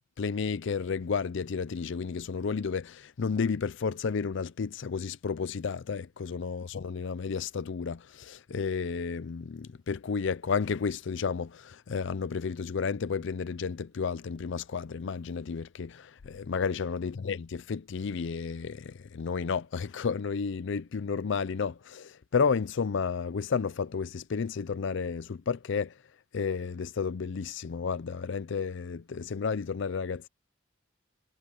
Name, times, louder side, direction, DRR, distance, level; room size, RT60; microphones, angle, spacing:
voice 1, 0.2-25.9 26.3-30.3, left 5 dB, 65° left, 0.5 m, -32 dB
head